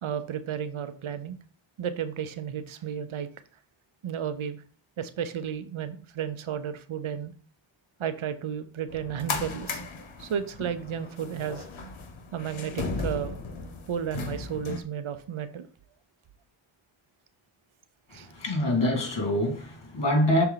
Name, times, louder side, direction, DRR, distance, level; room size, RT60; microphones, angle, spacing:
voice 1, 0.0-1.4 1.8-3.3 4.0-4.6 5.0-7.3 8.0-9.8 10.2-11.7 12.3-13.4 13.9-15.7 18.1-18.3, right 8 dB, 90° right, 0.8 m, -33 dB
sound 1, 8.9-14.8, left 3 dB, 85° left, 1.1 m, -36 dB
voice 2, 18.2-20.4, left 1 dB, 60° left, 2.4 m, -25 dB
6.7 x 4.3 x 4.0 m
cardioid pair, 45°, 47 cm